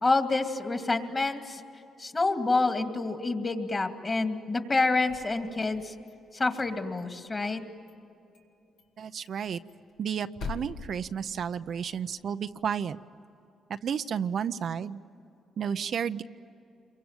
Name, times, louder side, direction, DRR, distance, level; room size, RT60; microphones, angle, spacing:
voice 1, 0.0-1.6 2.0-5.9 6.3-7.6, left 3 dB, 30° left, 6 dB, 2.4 m, -27 dB
sound 1, 4.9-6.1 6.5-7.6 7.9-8.0 8.3-8.5 8.8-8.9 9.2-11.8, left 4 dB, 75° left, 2.4 m, -43 dB
voice 2, 9.0-9.6 10.0-13.0 13.8-15.0 15.6-16.2, right 7 dB, 60° right, 10 dB, 0.6 m, -32 dB
27.5 x 23.5 x 9.0 m, 2.8 s
cardioid pair, 90°, 0 cm